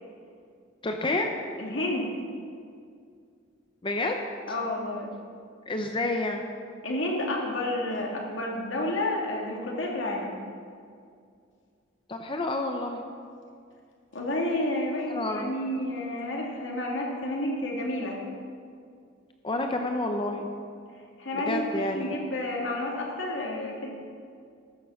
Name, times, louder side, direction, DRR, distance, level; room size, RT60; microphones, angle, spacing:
voice 1, 0.8-1.3 3.8-4.2 5.7-6.4 12.1-13.0 15.1-15.5 19.4-20.5 21.3-22.2, left 2 dB, 25° left, 4 dB, 0.7 m, -29 dB
voice 2, 1.6-2.1 4.5-5.1 6.8-10.4 14.1-18.2 21.2-21.6 21.9-23.9, left 1 dB, 75° left, -1 dB, 2.3 m, -30 dB
14.0 x 6.8 x 6.3 m, 2.3 s
head